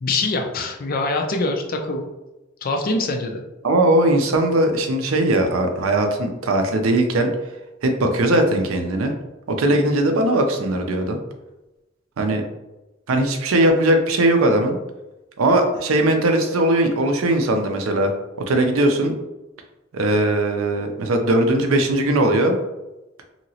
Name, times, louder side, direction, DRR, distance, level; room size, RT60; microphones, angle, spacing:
voice 1, 0.0-2.1 2.6-3.4, left 2 dB, 45° left, 4 dB, 0.4 m, -24 dB
voice 2, 3.6-7.3 7.8-9.1 9.5-11.2 12.2-12.4 13.1-14.8 15.4-18.1 18.5-19.1 19.9-22.6, right 1 dB, 80° right, 5 dB, 0.5 m, -19 dB
2.9 x 2.8 x 2.7 m, 1.0 s
head